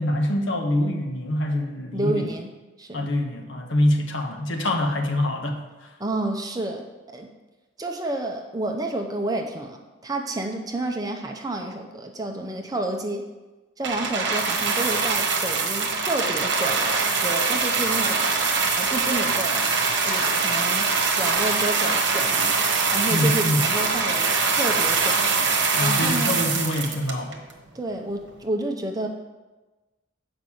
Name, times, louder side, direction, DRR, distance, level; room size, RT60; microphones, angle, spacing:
voice 1, 0.0-2.3 2.9-5.6 23.1-23.7 25.7-27.4, left 1 dB, 70° left, 3 dB, 1.1 m, -25 dB
voice 2, 1.9-2.5 2.8-3.1 6.0-6.9 7.1-7.3 7.8-13.3 13.8-18.3 18.8-19.7 20.0-20.9 21.2-22.6 22.9-25.3 25.8-26.5 27.7-29.1, right 2 dB, 20° right, 3 dB, 0.6 m, -30 dB
sound 1, 13.8-27.5 28.3-28.4, right 4 dB, 60° right, 1.1 m, -23 dB
7.2 x 5.2 x 6.3 m, 1.2 s
head